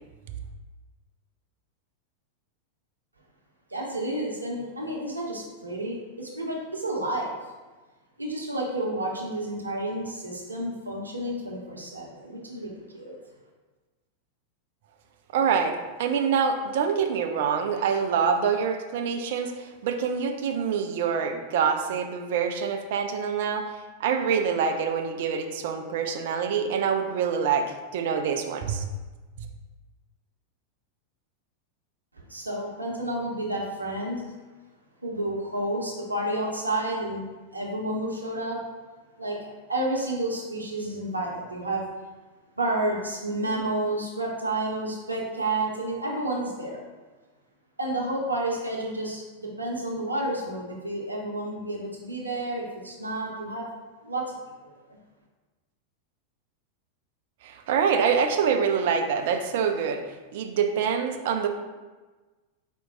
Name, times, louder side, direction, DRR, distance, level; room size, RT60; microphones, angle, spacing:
voice 1, 3.7-7.3 8.2-13.2 32.3-34.3 35.0-37.2 37.5-38.6 39.2-41.8 42.6-46.8 47.8-53.7 54.0-54.3 54.9-55.0, right 1 dB, 80° right, -2 dB, 0.7 m, -30 dB
voice 2, 15.3-28.8 57.4-60.0 60.3-61.5, right 6 dB, 55° right, 5 dB, 0.4 m, -26 dB
4.5 x 2.2 x 3.7 m, 1.3 s
figure-of-eight pair, 90°, 0 cm